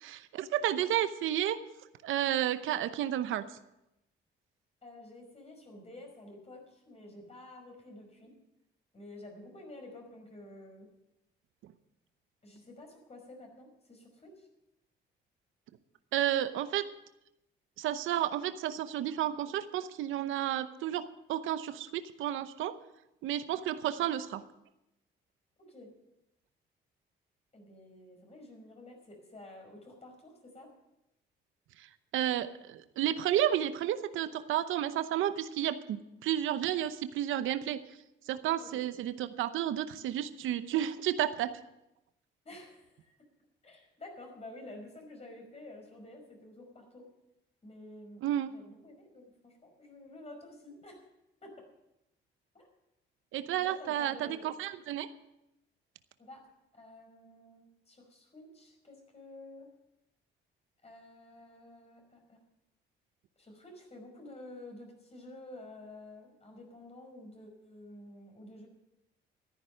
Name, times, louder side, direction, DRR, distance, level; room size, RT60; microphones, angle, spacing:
voice 1, 0.0-1.6 2.0-3.4 16.1-16.9 17.8-22.7 23.2-24.4 32.1-37.8 38.3-41.6 48.2-48.5 53.3-55.1, right 11 dB, 85° right, 12 dB, 0.8 m, -31 dB
voice 2, 4.8-8.3 8.9-10.9 12.4-14.5 24.0-24.1 25.6-25.9 27.5-30.7 38.6-38.8 42.5-43.2 43.6-47.0 47.6-51.0 51.4-51.6 52.5-52.7 53.6-54.5 56.2-56.5 56.7-59.7 60.8-62.4 63.4-68.7, left 1 dB, 30° left, 2 dB, 5.3 m, -50 dB
13.5 x 10.5 x 6.4 m, 0.88 s
cardioid pair, 90°, 20 cm